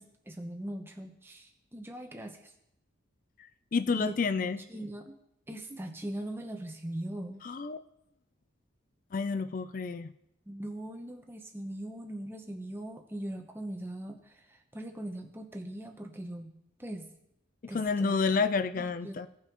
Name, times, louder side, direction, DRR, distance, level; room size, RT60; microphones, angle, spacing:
voice 1, 0.0-2.5 4.0-4.1 4.4-5.2 5.5-7.4 10.5-17.1 17.7-18.2 18.7-19.2, right 1 dB, 10° right, 3 dB, 0.8 m, -40 dB
voice 2, 3.7-4.6 7.4-7.8 9.1-10.1 17.7-19.3, left 4 dB, 40° left, 12 dB, 0.4 m, -29 dB
16.5 x 5.6 x 3.0 m, 0.79 s
head